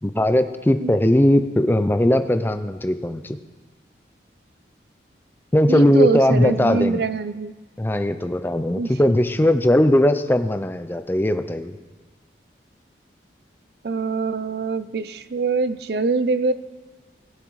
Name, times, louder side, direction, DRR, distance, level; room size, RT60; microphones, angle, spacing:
voice 1, 0.0-3.4 5.5-7.0 7.8-11.8, left 1 dB, 10° left, 10 dB, 0.4 m, -19 dB
voice 2, 0.8-1.1 5.7-7.6 8.8-8.9 13.8-16.5, right 4 dB, 60° right, 14 dB, 0.4 m, -24 dB
20.5 x 7.6 x 3.1 m, 1.3 s
head